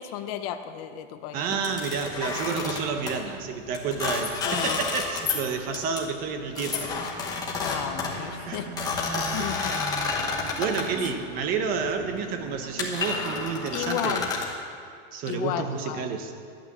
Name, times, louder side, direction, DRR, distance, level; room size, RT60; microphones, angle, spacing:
voice 1, 0.0-1.4 4.4-4.8 7.6-8.9 9.3-9.8 13.7-14.3 15.3-16.1, left 10 dB, 30° left, 8 dB, 0.6 m, -33 dB
voice 2, 1.3-6.9 8.4-8.6 9.2-9.7 10.6-14.3 15.1-16.3, right 5 dB, 25° right, 7 dB, 0.8 m, -30 dB
sound 1, 1.6-3.2 3.7-5.5 5.7-6.0 6.5-11.1 11.8-12.1 12.5-12.6 12.8-14.5, left 4 dB, 10° left, 1.0 m, -30 dB
sound 2, 6.2-14.3, right 3 dB, 45° right, 1.6 m, -43 dB
11.5 x 8.3 x 7.3 m, 2.3 s
supercardioid pair, 170°, 36 cm